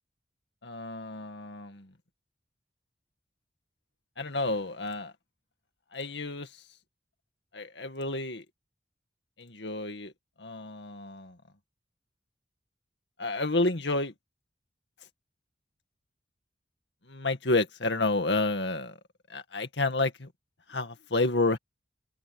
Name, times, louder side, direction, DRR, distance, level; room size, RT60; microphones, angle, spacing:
voice 1, 0.6-1.9 4.2-5.1 5.9-6.5 7.5-8.4 9.4-10.1 10.4-11.4 13.2-14.1 17.1-18.9 19.3-20.3 20.7-21.6, left 2 dB, 80° left, 2.0 m, -30 dB
open air
head